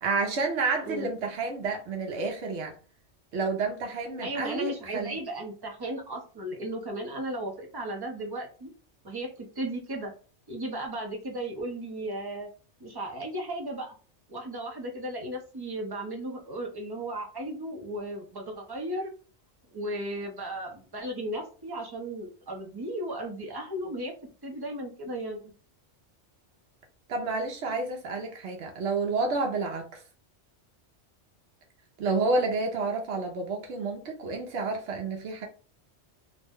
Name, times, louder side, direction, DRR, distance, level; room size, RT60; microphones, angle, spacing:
voice 1, 0.0-2.7 3.3-5.2 27.1-30.0 32.0-35.5, right 3 dB, 75° right, 0.9 m, -30 dB
voice 2, 4.2-8.7 9.0-10.1 10.5-12.5 12.8-13.9 14.3-19.1 19.7-24.1 24.4-25.4, right 1 dB, 25° right, 0.6 m, -35 dB
2.6 x 2.1 x 3.5 m
omnidirectional pair, 1.2 m